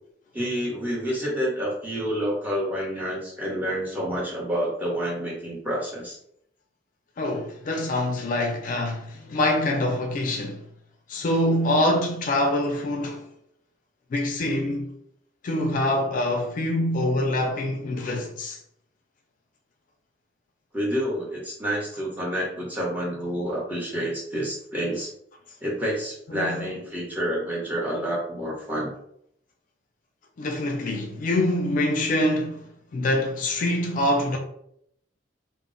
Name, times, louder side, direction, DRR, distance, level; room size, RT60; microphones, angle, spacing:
voice 1, 0.3-6.2 20.7-25.1 25.6-28.9, equal, 10° right, 0.8 m, -28 dB
voice 2, 7.2-10.6 11.1-13.2 14.1-14.9 15.4-18.6 26.3-26.7 30.4-32.6 32.9-34.4, left 1 dB, 45° left, 0.3 m, -25 dB
2.1 x 2.0 x 3.7 m
head